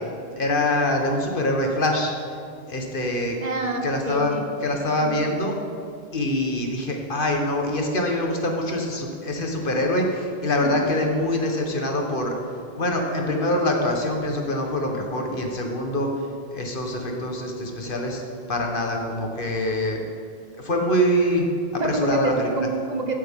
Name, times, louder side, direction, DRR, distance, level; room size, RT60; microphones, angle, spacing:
voice 1, 0.4-2.1 2.7-3.4 3.8-5.5 6.1-12.3 12.8-16.1 16.5-18.2 18.5-20.0 20.6-21.4 21.7-22.5, left 1 dB, 60° left, 2 dB, 1.5 m, -24 dB
voice 2, 3.4-4.5 5.0-5.2 10.6-10.9 21.8-23.1, right 2 dB, 45° right, 3 dB, 1.0 m, -27 dB
15.5 x 8.5 x 3.7 m, 2.3 s
omnidirectional pair, 1.0 m